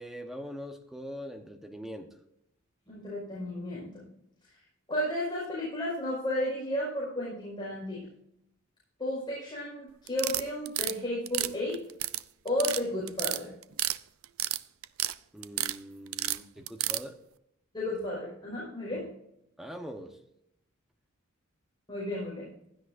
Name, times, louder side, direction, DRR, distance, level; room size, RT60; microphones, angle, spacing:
voice 1, 0.0-2.1 15.3-17.2 19.6-20.2, equal, ahead, 5 dB, 1.0 m, -42 dB
voice 2, 2.9-4.1 4.9-8.0 9.0-11.8 12.4-13.5 17.7-19.1 21.9-22.5, left 1 dB, 25° left, -6 dB, 5.1 m, -33 dB
sound 1, 10.1-10.9 11.3-12.2 12.5-12.8 13.1-14.0 14.2-15.1 15.4-15.8 16.1-17.0, right 15 dB, 85° right, 0.5 m, -30 dB
16.0 x 12.5 x 2.6 m, 0.79 s
head